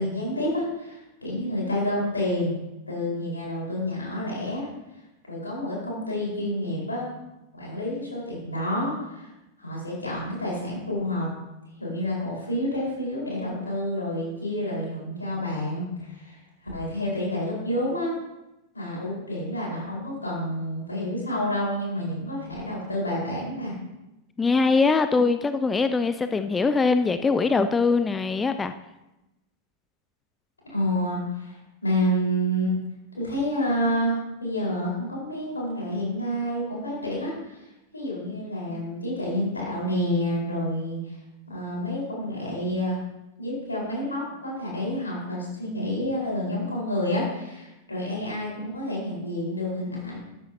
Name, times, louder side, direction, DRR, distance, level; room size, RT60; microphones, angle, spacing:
voice 1, 0.0-2.6 2.9-4.7 5.2-7.1 7.5-9.3 9.6-11.3 11.8-16.4 16.7-18.1 18.7-23.7 30.7-32.8 33.1-37.6 37.9-41.2 41.5-43.0 43.4-50.2, equal, 80° left, -4 dB, 4.4 m, -29 dB
voice 2, 24.4-28.7, left 4 dB, 15° left, 10 dB, 0.4 m, -22 dB
13.5 x 9.7 x 2.8 m, 0.96 s
figure-of-eight pair, 90°, 0 cm